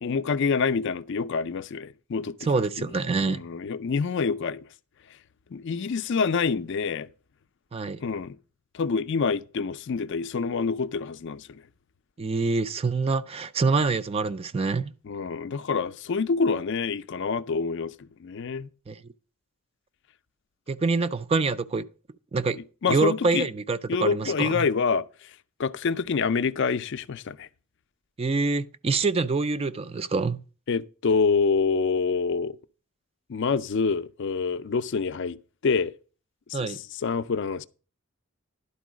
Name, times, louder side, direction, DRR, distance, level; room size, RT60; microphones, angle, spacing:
voice 1, 0.0-2.4 2.8-2.9 3.2-4.7 5.5-7.1 8.0-8.4 8.7-11.6 15.0-18.7 22.8-23.5 23.9-27.5 30.7-32.6 33.3-35.4 35.6-35.9 36.5-37.6, left 5 dB, 55° left, 0.4 m, -27 dB
voice 2, 2.4-3.4 7.7-8.0 12.2-14.9 18.9-19.0 20.7-21.9 22.3-22.6 22.9-24.7 28.2-30.4 36.5-36.8, right 4 dB, 25° right, 0.3 m, -26 dB
11.0 x 4.6 x 6.1 m
head